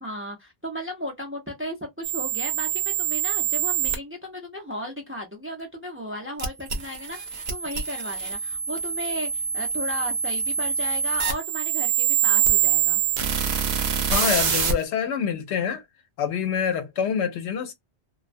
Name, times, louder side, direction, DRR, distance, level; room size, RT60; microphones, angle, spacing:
voice 1, 0.0-13.0, equal, 15° right, 0.5 m, -35 dB
sound 1, 2.0-4.0 6.4-14.7, right 8 dB, 70° right, 0.8 m, -25 dB
voice 2, 14.1-15.8 16.2-17.7, left 7 dB, 80° left, 0.9 m, -26 dB
2.3 x 2.2 x 2.5 m
omnidirectional pair, 1.1 m